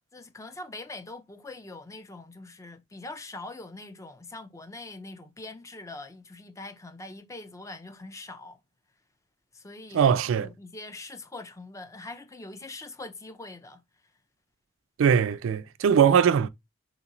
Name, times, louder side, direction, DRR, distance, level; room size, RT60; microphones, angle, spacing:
voice 1, 0.0-8.6 9.5-13.8, left 2 dB, 15° left, 0.4 m, -43 dB
voice 2, 9.9-10.5 15.0-16.5, right 7 dB, 70° right, 0.3 m, -21 dB
3.5 x 2.9 x 2.5 m
head